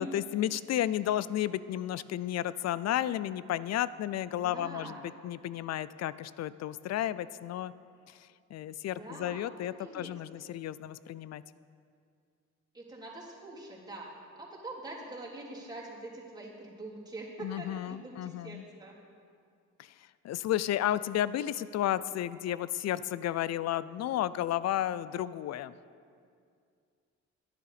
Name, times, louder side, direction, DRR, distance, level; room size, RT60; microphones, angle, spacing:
voice 1, 0.0-5.0 5.2-7.7 8.1-8.2 8.5-11.4 17.4-18.6 19.8-19.9 20.2-25.7, left 12 dB, 60° left, 17 dB, 0.4 m, -32 dB
voice 2, 4.4-5.1 8.9-10.2 12.7-19.0, right 2 dB, 15° right, -6 dB, 3.3 m, -44 dB
10.5 x 10.5 x 5.0 m, 2.3 s
cardioid pair, 90°, 30 cm